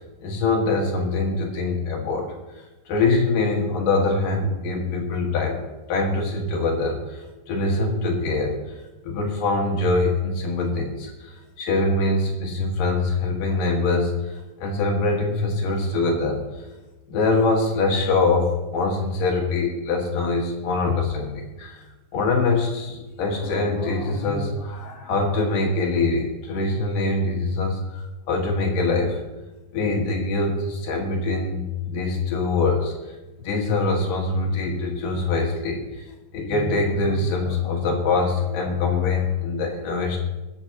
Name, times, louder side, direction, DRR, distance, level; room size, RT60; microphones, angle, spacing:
voice 1, 0.2-2.3 2.9-5.6 5.9-8.6 9.0-16.4 17.1-21.8 22.1-29.2 29.7-32.9 33.4-35.8 36.3-40.2, left 3 dB, 60° left, 0 dB, 3.0 m, -23 dB
21.0 x 8.6 x 2.9 m, 1.1 s
omnidirectional pair, 5.0 m